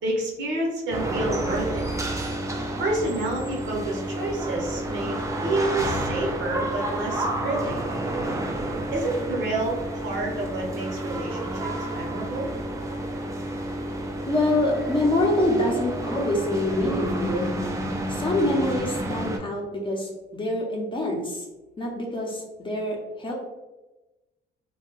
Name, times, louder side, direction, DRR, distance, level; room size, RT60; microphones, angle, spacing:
voice 1, 0.0-1.8 2.8-7.8 8.9-12.5, right 2 dB, 70° right, -2 dB, 0.8 m, -29 dB
sound 1, 0.9-19.4, right 1 dB, 15° right, 0.4 m, -30 dB
voice 2, 14.3-17.5 18.1-21.5 21.8-23.3, left 1 dB, 25° left, -1 dB, 0.6 m, -25 dB
2.2 x 2.1 x 3.0 m, 1.1 s
cardioid pair, 90°, 20 cm